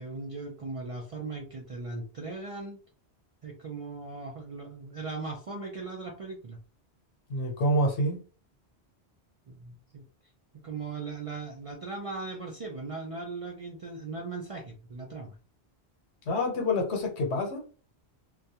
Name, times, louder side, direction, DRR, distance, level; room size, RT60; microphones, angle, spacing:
voice 1, 0.0-2.8 3.4-6.6 9.5-10.0 10.6-15.4, right 3 dB, 55° right, 0.4 m, -38 dB
voice 2, 7.3-8.2 16.3-17.6, left 1 dB, 85° left, 1.1 m, -27 dB
2.3 x 2.2 x 2.7 m
omnidirectional pair, 1.1 m